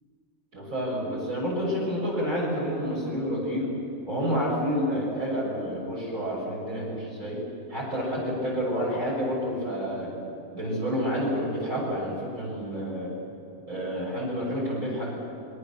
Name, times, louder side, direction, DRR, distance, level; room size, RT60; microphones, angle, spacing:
voice 1, 0.5-3.8 4.1-7.4 7.7-10.1 10.5-13.2 13.7-15.1, equal, 70° right, -4 dB, 7.0 m, -29 dB
27.5 x 24.5 x 7.1 m, 2.9 s
omnidirectional pair, 1.5 m